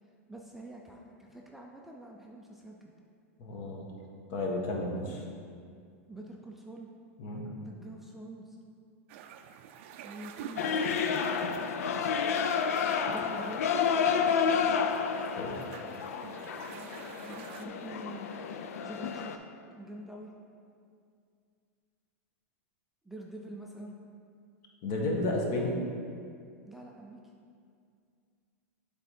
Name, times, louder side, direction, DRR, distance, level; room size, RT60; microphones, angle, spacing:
voice 1, 0.3-2.9 6.1-6.9 7.5-8.6 10.0-10.8 13.1-13.7 16.7-18.3 18.8-19.5 19.7-20.3 23.0-24.0 26.6-27.2, right 1 dB, 5° right, -2 dB, 0.4 m, -46 dB
voice 2, 3.4-3.9 4.3-5.2 7.2-7.4 15.4-15.5 24.8-25.8, left 2 dB, 50° left, 0 dB, 1.2 m, -32 dB
sound 1, 9.1-17.7, right 8 dB, 60° right, 0.4 m, -48 dB
sound 2, 10.6-19.4, left 6 dB, 80° left, 0.4 m, -30 dB
7.5 x 3.6 x 4.3 m, 2.3 s
supercardioid pair, 135°, 8 cm